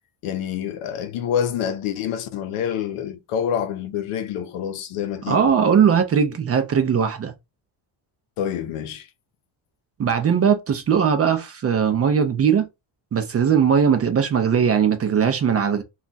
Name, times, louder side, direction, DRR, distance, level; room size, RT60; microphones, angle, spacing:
voice 1, 0.2-5.5 8.4-9.1, left 9 dB, 85° left, 0.7 m, -27 dB
voice 2, 5.3-7.3 10.0-12.7 13.1-15.8, right 7 dB, 30° right, 0.4 m, -19 dB
2.4 x 2.2 x 3.7 m
cardioid pair, 115°, 49 cm